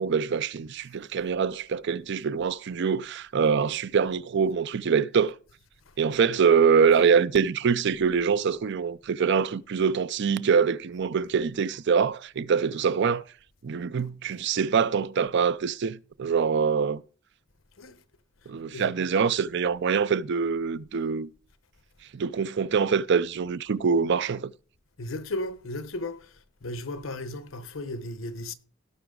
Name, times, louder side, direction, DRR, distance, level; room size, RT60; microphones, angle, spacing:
voice 1, 0.0-5.3 6.0-13.2 13.6-17.0 18.5-21.3 22.1-24.5, right 6 dB, 60° right, 0.5 m, -24 dB
voice 2, 18.7-19.1 25.0-26.3 26.6-28.5, left 1 dB, 90° left, 1.0 m, -35 dB
17.0 x 5.9 x 3.8 m
head